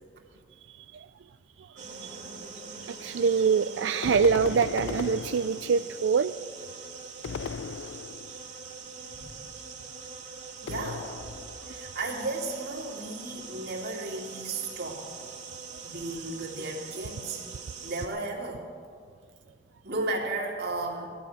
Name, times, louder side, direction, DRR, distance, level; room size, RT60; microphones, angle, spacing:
voice 1, 0.7-1.1 1.6-2.3 2.9-6.3 11.8-11.9 15.7-15.8, right 6 dB, 85° right, 11 dB, 0.4 m, -26 dB
sound 1, 1.8-18.1, right 5 dB, 45° right, 2.6 m, -43 dB
sound 2, 4.0-6.0 7.2-8.4 10.7-11.7, left 6 dB, 85° left, 0.4 m, -37 dB
voice 2, 10.6-11.1 11.7-15.1 15.8-17.4 17.8-18.7 19.8-21.1, right 2 dB, 60° right, -1 dB, 2.9 m, -34 dB
17.5 x 12.5 x 6.5 m, 2.1 s
head